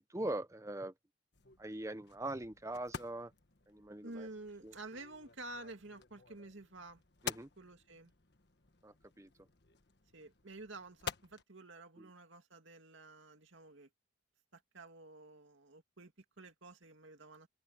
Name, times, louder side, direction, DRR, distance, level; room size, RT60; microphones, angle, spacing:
voice 1, 0.1-0.9 1.6-3.3 3.7-4.3 4.6-4.7 7.2-7.5 8.8-9.3, right 1 dB, 15° right, 0.8 m, -41 dB
sound 1, 1.3-11.4, left 6 dB, 55° left, 1.6 m, -50 dB
voice 2, 4.0-7.0 7.6-8.1 10.1-13.9 14.5-17.5, right 2 dB, 70° right, 2.3 m, -51 dB
head